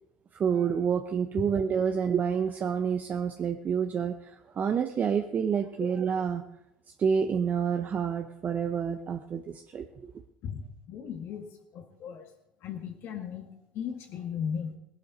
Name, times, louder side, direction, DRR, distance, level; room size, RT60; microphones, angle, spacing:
voice 1, 0.3-6.4 7.0-10.1, right 7 dB, 35° right, 7 dB, 0.8 m, -28 dB
voice 2, 10.4-11.4 11.7-12.3 12.6-14.8, left 7 dB, 55° left, 3 dB, 1.7 m, -37 dB
17.0 x 11.0 x 4.0 m, 0.82 s
hypercardioid pair, 80°, 5 cm